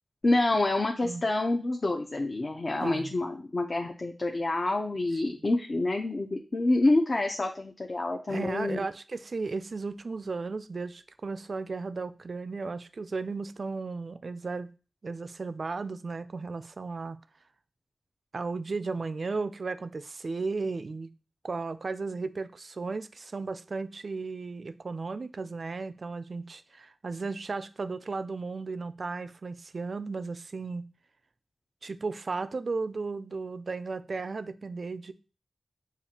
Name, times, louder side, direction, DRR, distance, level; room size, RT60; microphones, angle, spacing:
voice 1, 0.2-8.9, left 2 dB, 45° left, 0.5 m, -27 dB
voice 2, 2.8-3.1 5.3-5.4 8.3-14.7 15.0-17.2 18.3-21.1 21.4-30.9 31.8-35.1, right 4 dB, 60° right, 0.3 m, -35 dB
6.9 x 2.5 x 2.8 m
wide cardioid pair, 75°, 0 cm